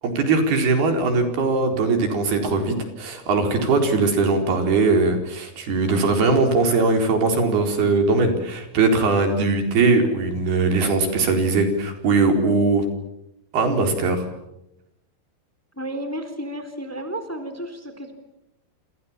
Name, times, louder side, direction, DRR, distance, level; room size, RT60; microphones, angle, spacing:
voice 1, 0.0-12.9 13.5-14.3, right 3 dB, 85° right, 5 dB, 6.3 m, -20 dB
voice 2, 15.7-18.1, right 1 dB, 5° left, 8 dB, 3.3 m, -32 dB
28.5 x 28.5 x 7.4 m, 0.87 s
omnidirectional pair, 4.4 m